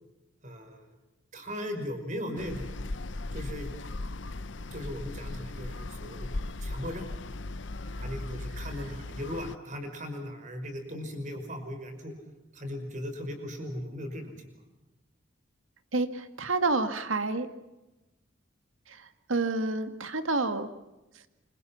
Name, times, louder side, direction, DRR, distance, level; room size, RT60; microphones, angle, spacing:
voice 1, 0.4-0.8 1.3-2.7 3.3-3.7 4.7-6.3 6.6-7.0 7.9-12.1 12.5-14.5, equal, 40° right, 6 dB, 5.5 m, -38 dB
sound 1, 2.4-9.6, left 2 dB, 65° left, 0.9 m, -37 dB
voice 2, 15.9-17.5 18.9-20.7, right 3 dB, 85° right, 9 dB, 2.0 m, -29 dB
28.5 x 25.5 x 5.8 m, 1.0 s
head